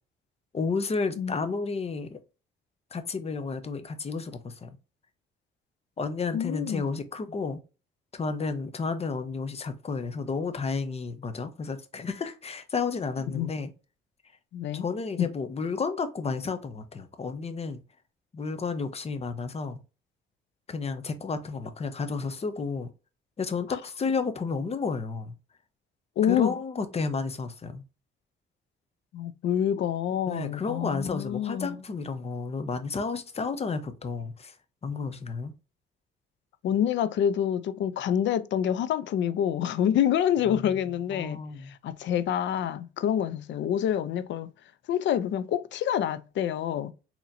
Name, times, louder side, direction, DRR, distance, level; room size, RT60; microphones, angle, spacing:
voice 1, 0.5-2.2 2.9-4.8 6.0-7.6 8.1-13.7 14.7-17.8 18.3-19.8 20.7-22.9 23.4-25.3 26.2-27.8 30.3-34.5 34.8-35.5 40.5-40.7 41.1-41.7, left 4 dB, 30° left, 0.7 m, -32 dB
voice 2, 6.3-6.8 13.3-13.5 14.5-14.8 26.2-26.5 29.1-31.8 36.6-44.5 44.9-46.9, left 9 dB, 70° left, 0.4 m, -27 dB
4.1 x 2.9 x 2.6 m
cardioid pair, 90°, 20 cm